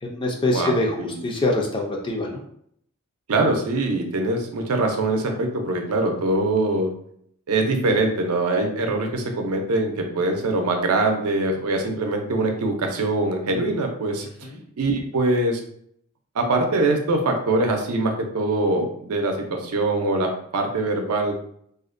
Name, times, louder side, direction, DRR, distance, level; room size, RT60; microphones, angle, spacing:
voice 1, 0.0-2.4 14.4-14.6, left 2 dB, 25° left, 0 dB, 0.4 m, -24 dB
voice 2, 0.5-1.2 3.3-6.9 7.5-14.3 14.8-15.6 16.4-21.3, right 2 dB, 85° right, 3 dB, 0.5 m, -23 dB
2.4 x 2.1 x 2.4 m, 0.67 s
head